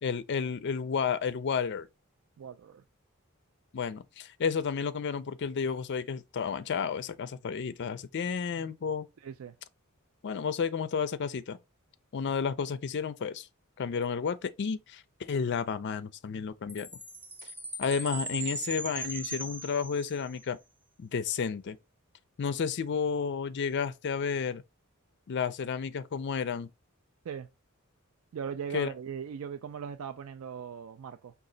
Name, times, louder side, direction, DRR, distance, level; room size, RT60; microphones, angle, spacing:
voice 1, 0.0-1.9 3.7-9.1 10.2-11.6 12.1-13.5 13.8-16.9 17.8-20.6 21.0-21.8 22.4-24.6 25.3-26.7 28.7-28.9, left 6 dB, 50° left, 0.4 m, -31 dB
voice 2, 2.4-2.8 9.2-9.6 27.2-27.5 28.3-31.3, right 7 dB, 65° right, 0.3 m, -39 dB
Chime, 16.7-20.4, right 2 dB, 10° right, 0.5 m, -39 dB
5.1 x 2.4 x 3.8 m
head